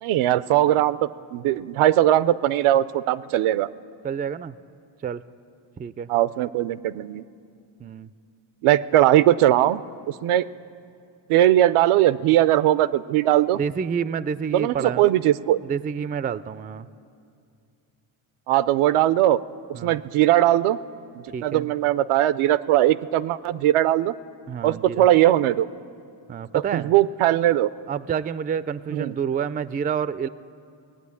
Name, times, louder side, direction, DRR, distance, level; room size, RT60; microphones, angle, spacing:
voice 1, 0.0-3.7 6.1-7.2 8.6-9.8 10.2-10.5 11.3-13.6 14.5-15.6 18.5-19.4 19.8-20.8 21.4-24.2 24.6-25.7 26.5-27.7 28.9-29.1, right 13 dB, 80° right, 17 dB, 0.5 m, -19 dB
voice 2, 4.0-4.5 5.0-5.2 5.8-6.1 7.8-8.1 13.6-15.1 15.6-16.9 19.7-20.0 21.3-21.7 24.5-25.1 26.3-26.9 27.9-30.3, right 7 dB, 20° right, 16 dB, 0.3 m, -28 dB
19.0 x 8.8 x 8.5 m, 2.4 s
supercardioid pair, 65°, 49 cm